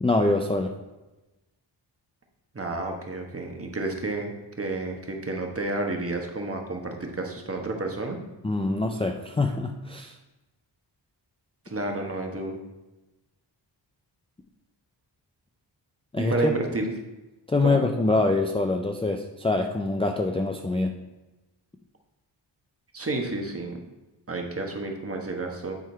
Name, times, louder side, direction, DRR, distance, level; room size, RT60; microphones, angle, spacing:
voice 1, 0.0-0.7 8.4-10.2 16.1-16.5 17.5-20.9, left 2 dB, 15° left, 2 dB, 0.4 m, -24 dB
voice 2, 2.5-8.2 11.6-12.6 16.2-16.9 17.6-17.8 22.9-23.8 24.3-25.7, right 2 dB, 30° right, 2 dB, 1.2 m, -30 dB
9.3 x 3.8 x 4.5 m, 1.1 s
wide cardioid pair, 90°, 44 cm